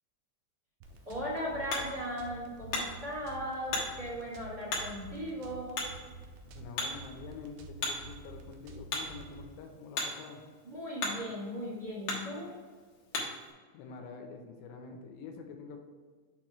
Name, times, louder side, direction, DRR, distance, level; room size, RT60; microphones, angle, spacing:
Hammer, 0.8-13.5, left 2 dB, 65° left, 2.0 m, -40 dB
sound 1, 0.8-9.5, right 2 dB, 90° right, 2.9 m, -50 dB
voice 1, 1.0-5.8 10.6-12.5, equal, 55° right, -9 dB, 1.0 m, -37 dB
voice 2, 6.6-10.4 13.7-15.8, left 5 dB, 85° left, 3 dB, 2.8 m, -46 dB
7.7 x 3.0 x 5.8 m, 1.5 s
omnidirectional pair, 5.3 m